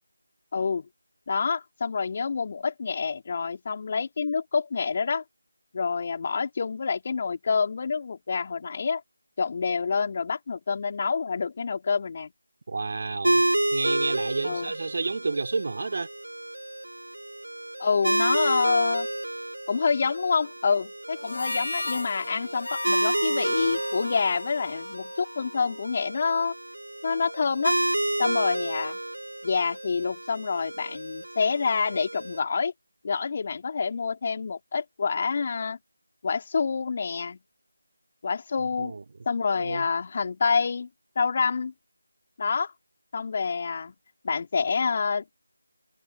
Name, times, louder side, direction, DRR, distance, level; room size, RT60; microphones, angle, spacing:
voice 1, 0.5-0.9 1.3-5.2 5.7-9.0 9.4-12.3 14.4-14.7 17.8-19.1 19.7-26.5 27.0-27.8 28.2-29.0 29.4-32.7 33.0-35.8 36.2-37.4 38.2-38.9 39.3-40.9 41.2-41.7 42.4-42.7 43.1-43.9 44.2-45.2, left 5 dB, 35° left, 3.6 m, -27 dB
voice 2, 12.7-13.4 13.7-16.1 38.6-39.0 39.5-39.8, right 3 dB, 45° right, 3.3 m, -30 dB
sound 1, 13.2-32.4, right 1 dB, 75° right, 3.4 m, -30 dB
Harmonica, 21.2-25.8, left 2 dB, 65° left, 1.6 m, -36 dB
figure-of-eight pair, 165°, 0 cm